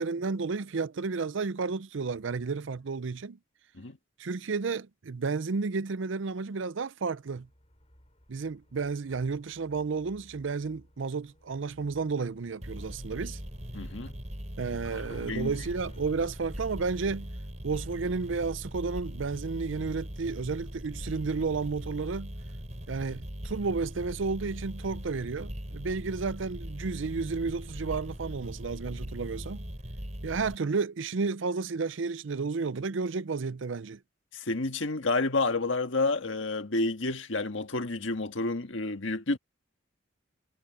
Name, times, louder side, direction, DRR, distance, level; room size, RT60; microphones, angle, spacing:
voice 1, 0.0-3.4 4.2-7.5 8.3-13.4 14.6-17.3 17.6-22.3 22.9-29.6 30.2-34.0, right 4 dB, 70° right, 0.5 m, -32 dB
Motorcycle / Accelerating revving vroom, 7.2-21.0, left 1 dB, 30° left, 7.2 m, -59 dB
sound 1, 12.6-30.6, equal, 35° right, 5.4 m, -40 dB
voice 2, 13.7-14.1 14.9-15.6 34.3-39.4, left 3 dB, 70° left, 1.6 m, -30 dB
head